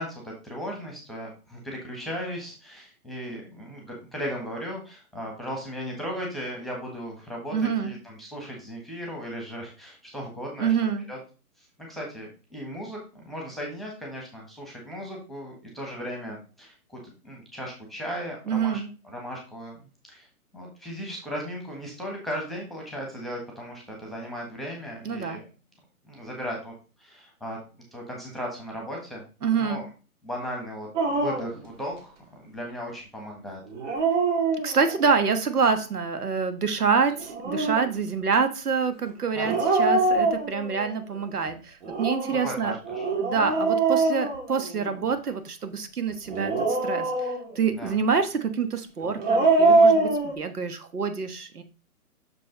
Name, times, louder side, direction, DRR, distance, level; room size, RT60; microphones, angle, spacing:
voice 1, 0.0-10.8 11.1-11.2 11.9-19.8 20.1-20.3 20.5-25.4 26.1-26.7 27.0-27.6 27.9-29.2 29.5-29.9 30.2-33.6 39.3-39.6 42.2-43.1 43.5-43.6 47.7-47.9, equal, ahead, -1 dB, 1.3 m, -36 dB
voice 2, 7.5-7.9 10.6-11.0 18.5-18.9 25.0-25.4 29.4-29.8 34.6-42.8 43.2-51.6, right 5 dB, 80° right, 9 dB, 1.4 m, -26 dB
Dog, 30.9-31.6 33.7-35.0 37.1-37.9 39.4-40.9 41.8-45.0 46.3-47.7 49.0-50.3, right 3 dB, 50° right, 2.5 m, -24 dB
6.3 x 5.2 x 3.8 m, 0.34 s
hypercardioid pair, 140°, 45 cm